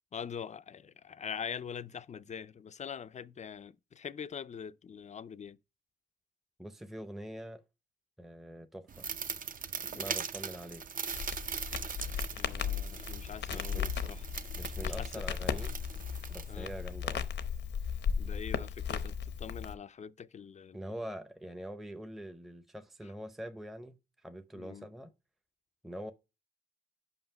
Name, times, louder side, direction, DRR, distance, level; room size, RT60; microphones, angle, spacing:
voice 1, 0.1-5.6 9.8-10.1 12.3-14.2 14.8-15.2 16.5-16.7 18.2-20.9 24.6-24.9, left 7 dB, 40° left, 0.4 m, -44 dB
voice 2, 6.6-7.6 8.2-9.1 9.8-10.8 13.5-13.9 14.6-15.8 16.3-17.3 20.7-25.1 25.8-26.1, equal, ahead, 0.6 m, -44 dB
sound 1, 8.9-16.9, right 6 dB, 50° right, 0.6 m, -41 dB
Crackle, 11.1-19.7, left 7 dB, 75° left, 0.7 m, -36 dB
5.6 x 5.2 x 5.5 m
cardioid pair, 75°, 18 cm